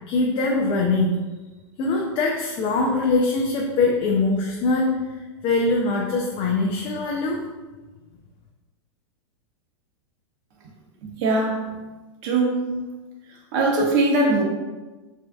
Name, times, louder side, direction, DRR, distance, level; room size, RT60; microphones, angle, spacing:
voice 1, 0.1-1.2 1.8-5.0 5.4-7.4, left 3 dB, 30° left, -1 dB, 0.5 m, -22 dB
voice 2, 11.2-11.7 12.2-12.6 13.5-14.4, right 2 dB, 45° right, -2 dB, 1.2 m, -20 dB
6.4 x 2.8 x 2.3 m, 1.2 s
supercardioid pair, 145°, 16 cm